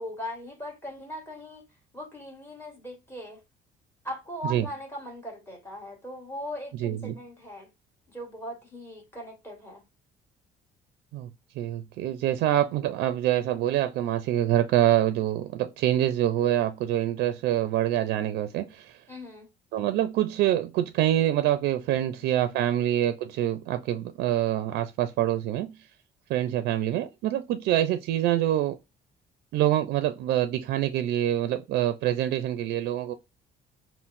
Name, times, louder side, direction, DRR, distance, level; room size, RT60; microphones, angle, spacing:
voice 1, 0.0-1.6 1.9-3.4 4.0-7.7 8.1-9.8 19.1-19.5 20.0-20.1 22.4-22.8, left 1 dB, 15° left, 1.5 m, -39 dB
voice 2, 6.8-7.2 11.1-11.3 11.6-19.0 19.7-25.8 26.3-28.8 29.5-33.1, right 12 dB, 75° right, 0.4 m, -25 dB
5.7 x 2.0 x 2.5 m
cardioid pair, 110°, 17 cm